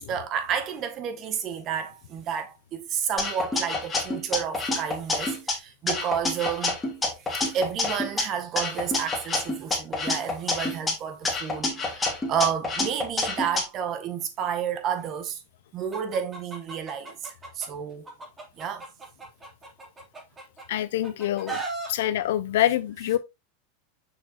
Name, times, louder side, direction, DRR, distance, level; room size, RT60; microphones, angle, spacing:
voice 1, 0.1-6.8 7.2-15.4 15.7-18.1 18.6-18.9, right 8 dB, 40° right, 1.5 m, -31 dB
sound 1, 3.2-5.5 5.9-8.2 8.6-10.9 11.2-13.6, left 3 dB, 15° left, 3.4 m, -28 dB
Chicken rooster, 15.9-17.7 18.1-20.6 21.0-21.9, right 3 dB, 20° right, 2.9 m, -36 dB
voice 2, 20.7-21.6 21.9-23.2, left 12 dB, 75° left, 0.7 m, -25 dB
6.7 x 6.2 x 2.9 m
hypercardioid pair, 120°, 0 cm